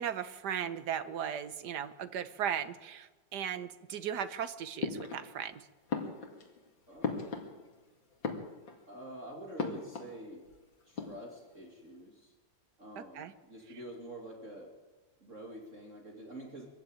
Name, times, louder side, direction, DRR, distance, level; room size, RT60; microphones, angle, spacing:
voice 1, 0.0-5.7 13.1-13.3, right 8 dB, 65° right, 11 dB, 1.6 m, -37 dB
sound 1, 4.8-5.5 5.9-7.8 8.1-9.0 9.6-10.2 10.4-10.5 10.8-11.5, left 4 dB, 90° left, 3.0 m, -38 dB
voice 2, 6.9-7.5 8.9-10.4 10.8-12.3 12.8-14.7 15.2-16.7, right 1 dB, 40° right, 0 dB, 2.9 m, -47 dB
23.5 x 14.5 x 9.0 m, 1.2 s
omnidirectional pair, 2.0 m